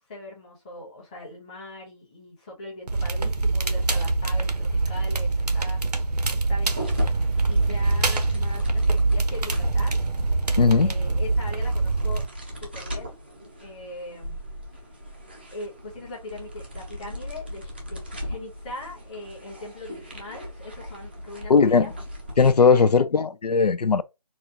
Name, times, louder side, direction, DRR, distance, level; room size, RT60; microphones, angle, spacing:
voice 1, 0.0-5.8 6.3-7.2 7.5-10.0 10.7-13.2 13.6-14.4 15.5-21.9 22.7-23.0, left 1 dB, 10° left, 1.0 m, -40 dB
Crackle, 2.9-12.3, right 3 dB, 80° right, 0.8 m, -24 dB
sound 1, 6.6-22.5, left 1 dB, 15° right, 0.5 m, -36 dB
voice 2, 10.6-10.9 21.5-21.9 22.4-24.0, left 5 dB, 80° left, 0.5 m, -18 dB
4.2 x 2.4 x 2.7 m
figure-of-eight pair, 165°, 20 cm